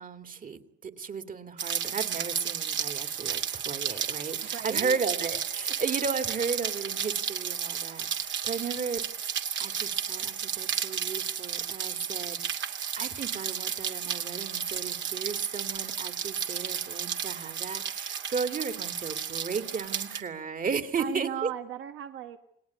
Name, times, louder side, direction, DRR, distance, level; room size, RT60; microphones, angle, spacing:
voice 1, 0.0-9.0 9.6-21.5, right 5 dB, 45° right, 8 dB, 2.6 m, -34 dB
Rain, 1.6-20.2, right 8 dB, 70° right, 2.8 m, -33 dB
voice 2, 4.4-5.0 21.0-22.4, right 10 dB, 85° right, 7 dB, 1.9 m, -36 dB
29.0 x 20.5 x 9.5 m, 0.73 s
cardioid pair, 90°, 20 cm